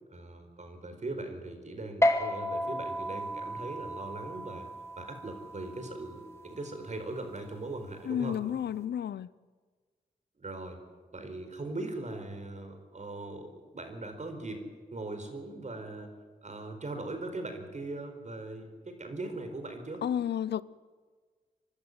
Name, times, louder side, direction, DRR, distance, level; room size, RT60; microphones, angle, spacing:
voice 1, 0.1-4.7 5.0-8.4 10.4-10.8 11.1-16.1 16.4-20.0, right 2 dB, 40° right, 4.5 m, -40 dB
sound 1, 2.0-8.8, left 1 dB, 15° left, 2.3 m, -34 dB
voice 2, 8.1-9.3 20.0-20.6, left 9 dB, 70° left, 0.6 m, -31 dB
25.5 x 12.0 x 9.6 m
cardioid pair, 60°, 18 cm